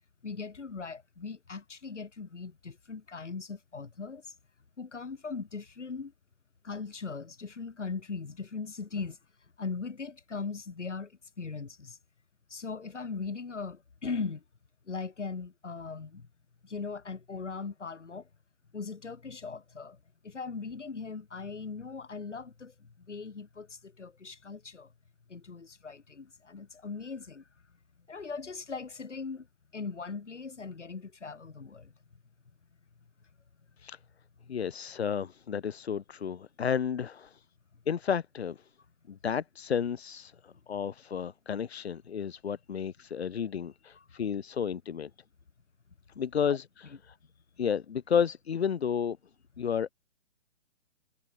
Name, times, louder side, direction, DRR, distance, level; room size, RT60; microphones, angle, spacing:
voice 1, 0.2-4.2 4.8-6.1 6.6-9.2 9.6-12.0 12.5-14.4 14.9-16.3 16.6-18.3 18.7-20.0 20.2-24.9 25.3-27.4 28.1-29.5 29.7-31.9 40.5-40.6 43.9-44.1 46.4-46.6 46.9-47.0, left 4 dB, 75° left, 5.4 m, -39 dB
voice 2, 34.5-37.4 37.9-38.6 39.1-45.1 46.2-47.1 47.6-49.2 49.6-49.9, left 7 dB, 60° left, 2.8 m, -32 dB
figure-of-eight pair, 130°, 36 cm